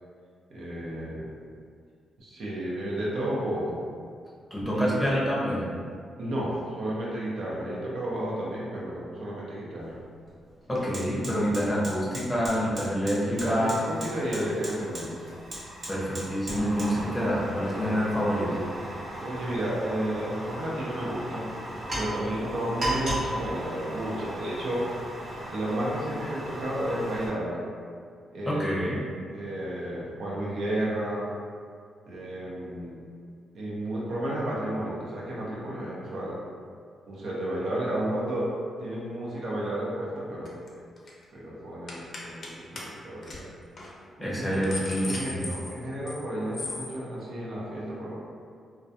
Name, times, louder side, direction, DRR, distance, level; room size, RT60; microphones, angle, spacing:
voice 1, 0.5-1.3 2.2-3.8 4.7-5.0 6.2-10.0 13.2-15.4 19.2-21.5 21.9-25.0 25.5-27.6 28.3-28.9 29.3-31.3 32.0-33.0 33.5-36.4 37.1-40.6 41.3-43.5 44.2-44.6 45.0-48.1, right 1 dB, 70° right, -6 dB, 0.6 m, -32 dB
voice 2, 4.5-5.7 10.7-13.8 15.9-18.7 28.5-29.0 44.2-45.5, equal, 5° left, -6 dB, 0.6 m, -27 dB
Fire, 9.8-9.9 10.3-27.3, right 1 dB, 50° right, 1.0 m, -37 dB
sound 1, 40.4-40.7 41.0-41.2 41.9-42.5 42.8-42.9 43.2-43.4 43.8-43.9 44.3-46.2 46.5-46.9, left 3 dB, 50° left, 0.5 m, -37 dB
2.3 x 2.2 x 2.7 m, 2.1 s
cardioid pair, 80°, 0 cm